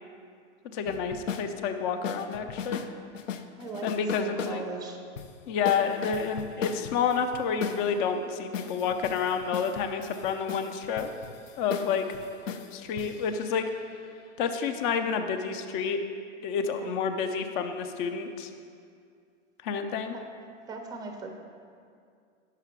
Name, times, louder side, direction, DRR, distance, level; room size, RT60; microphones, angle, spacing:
voice 1, 0.7-2.8 3.8-4.6 5.5-11.1 11.6-12.1 12.7-13.7 14.4-16.0 16.4-18.5 19.6-20.2, left 6 dB, 40° left, 8 dB, 0.6 m, -29 dB
sound 1, 0.9-1.5 2.0-2.9 3.1-4.6 5.2-5.3 5.6-7.8 8.5-14.2, left 7 dB, 85° left, 0.6 m, -37 dB
voice 2, 3.6-3.9 4.2-5.0 16.7-16.9 20.1-20.2 20.7-21.3, right 3 dB, 10° right, 3 dB, 0.5 m, -39 dB
5.8 x 4.9 x 6.0 m, 2.3 s
hypercardioid pair, 125°, 37 cm